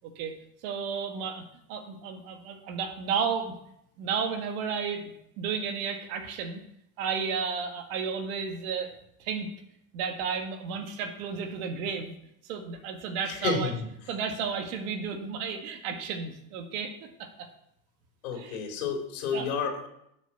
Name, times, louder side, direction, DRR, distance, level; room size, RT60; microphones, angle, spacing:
voice 1, 0.6-3.5 4.0-6.6 7.0-9.5 9.9-12.1 12.5-13.7 14.1-17.5 18.3-18.6 19.3-19.5, right 6 dB, 75° right, 4 dB, 1.9 m, -33 dB
voice 2, 13.4-13.8 18.2-19.9, left 5 dB, 85° left, 1 dB, 3.3 m, -30 dB
10.5 x 6.3 x 6.9 m, 0.76 s
supercardioid pair, 90°, 43 cm